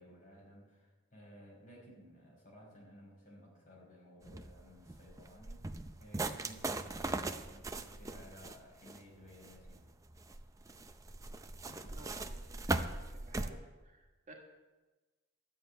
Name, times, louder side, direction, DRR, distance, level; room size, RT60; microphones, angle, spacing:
voice 1, 0.0-5.6 6.0-9.9 11.7-12.0, equal, 40° left, -2 dB, 5.0 m, -56 dB
sound 1, 4.2-13.5, right 2 dB, 15° right, 0.5 m, -40 dB
voice 2, 11.9-12.7 13.1-13.6 13.9-14.3, right 1 dB, 35° right, 0 dB, 1.6 m, -55 dB
12.5 x 7.1 x 9.2 m, 1.2 s
head